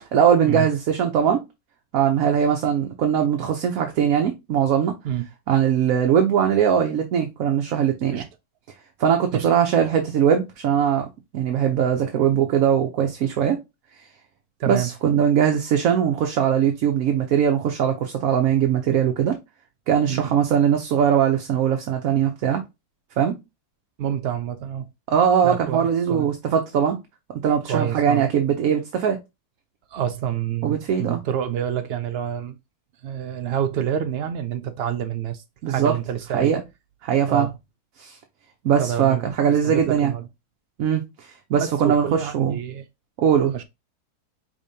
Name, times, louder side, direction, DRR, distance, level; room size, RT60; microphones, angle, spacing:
voice 1, 0.1-1.4 1.9-5.0 5.5-8.2 9.0-11.1 11.3-13.6 14.7-19.3 19.9-22.6 23.2-23.4 25.1-27.0 27.3-29.2 30.6-31.2 35.6-35.9 36.3-36.6 37.0-37.5 38.0-38.2 38.6-40.1 40.8-42.6 43.2-43.5, right 8 dB, 70° right, 1.1 m, -21 dB
voice 2, 24.0-24.9 25.4-26.3 27.6-28.3 29.9-32.6 33.0-36.5 37.3-37.5 38.8-39.3 39.6-40.3 41.6-42.8 43.5-43.6, right 9 dB, 85° right, 0.5 m, -28 dB
5.0 x 3.6 x 2.7 m
omnidirectional pair, 1.6 m